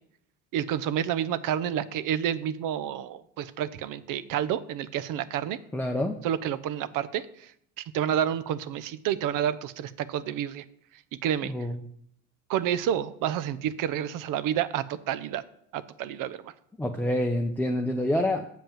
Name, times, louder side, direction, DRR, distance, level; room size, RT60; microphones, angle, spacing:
voice 1, 0.5-5.6 6.2-7.5 7.8-10.6 11.2-11.5 12.5-15.4 15.7-16.5, right 10 dB, 55° right, 17 dB, 0.7 m, -29 dB
voice 2, 5.7-6.2 11.4-11.8 16.8-18.5, left 1 dB, 5° left, 4 dB, 0.7 m, -27 dB
7.2 x 5.4 x 7.3 m, 0.70 s
supercardioid pair, 85°, 38 cm